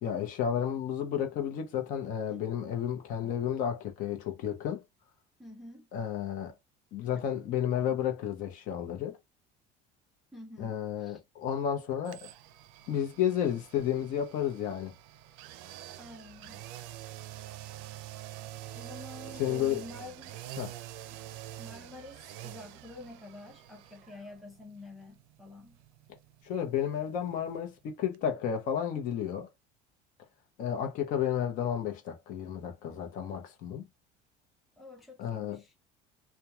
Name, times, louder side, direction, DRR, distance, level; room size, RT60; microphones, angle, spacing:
voice 1, 0.0-4.8 5.9-6.5 6.9-9.2 10.6-12.3 12.9-14.9 19.4-19.8 20.6-20.7 26.4-29.5 30.6-33.9 35.2-35.6, left 9 dB, 50° left, 0.7 m, -32 dB
voice 2, 5.4-5.9 10.3-11.2 16.0-16.7 17.3-17.5 18.7-20.4 21.6-25.8 34.8-35.7, left 2 dB, ahead, 0.4 m, -48 dB
sound 1, 12.0-27.9 28.1-28.2, right 14 dB, 85° right, 0.4 m, -47 dB
2.9 x 2.2 x 2.3 m
cardioid pair, 180°, 18 cm